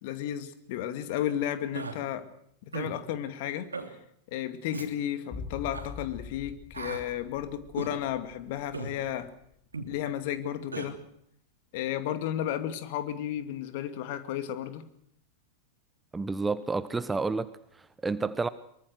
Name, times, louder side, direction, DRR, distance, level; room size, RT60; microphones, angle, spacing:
voice 1, 0.0-2.3 2.7-4.0 4.3-9.3 9.8-11.0 11.7-14.8, left 11 dB, 50° left, 9 dB, 2.4 m, -33 dB
Human voice, 1.7-2.0 2.7-3.0 3.7-3.9 4.7-4.9 5.7-5.9 6.7-7.0 7.8-7.9 8.7-8.9 9.7-9.9 10.7-10.9, right 4 dB, 75° right, 2.9 m, -36 dB
sound 1, 5.3-9.5 9.8-9.9, left 5 dB, 30° left, 4.6 m, -44 dB
voice 2, 16.1-18.5, right 3 dB, 10° right, 16 dB, 0.9 m, -30 dB
24.0 x 23.0 x 6.4 m, 0.71 s
figure-of-eight pair, 90°, 0 cm